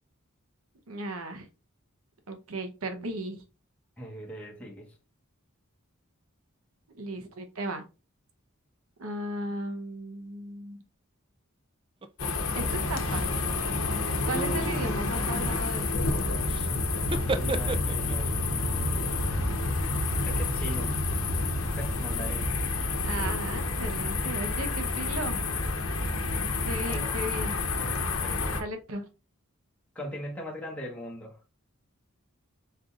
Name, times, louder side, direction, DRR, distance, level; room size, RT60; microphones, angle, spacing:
voice 1, 0.9-1.5 2.3-3.4 6.9-7.8 9.0-10.8 12.5-13.5 14.3-15.9 23.0-25.4 26.6-27.6 28.6-29.0, right 1 dB, 85° right, 0.8 m, -36 dB
voice 2, 4.0-4.9 17.3-19.6 20.2-21.0 21.8-22.5 26.8-27.1 28.2-28.7 29.9-31.4, equal, 5° left, 1.2 m, -40 dB
sound 1, 12.0-12.3 13.0-13.4 13.8-14.6 16.5-16.7 17.0-18.3, right 3 dB, 25° right, 0.3 m, -35 dB
sound 2, 12.2-28.6, left 2 dB, 75° left, 0.8 m, -29 dB
sound 3, 13.6-18.1, right 1 dB, 40° left, 0.8 m, -41 dB
4.6 x 3.7 x 2.4 m
head